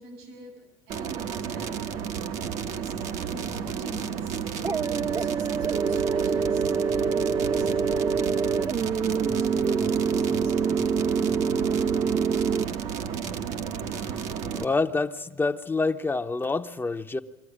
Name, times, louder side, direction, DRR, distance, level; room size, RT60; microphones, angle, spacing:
voice 1, 0.0-2.0 2.7-3.0 3.3-8.5 8.9-10.9, right 1 dB, 80° right, 7 dB, 6.6 m, -44 dB
sound 1, 0.9-14.6, right 7 dB, 65° right, 1.3 m, -32 dB
sound 2, 4.6-12.6, right 5 dB, 30° right, 0.8 m, -26 dB
voice 2, 13.9-14.2 14.5-17.2, left 3 dB, 15° left, 7 dB, 0.8 m, -27 dB
22.5 x 14.5 x 10.0 m, 1.0 s
supercardioid pair, 90°, 13 cm